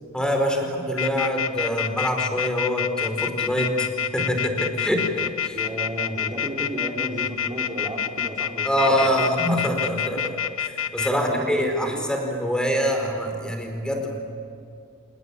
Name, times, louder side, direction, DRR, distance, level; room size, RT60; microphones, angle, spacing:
voice 1, 0.1-3.9 4.1-5.6 8.6-14.2, equal, 5° left, 3 dB, 4.6 m, -25 dB
sound 1, 1.0-11.1, left 9 dB, 70° left, 1.1 m, -26 dB
voice 2, 5.5-9.3 11.1-12.1, right 1 dB, 20° right, -2 dB, 4.0 m, -33 dB
28.0 x 20.0 x 8.9 m, 2.5 s
head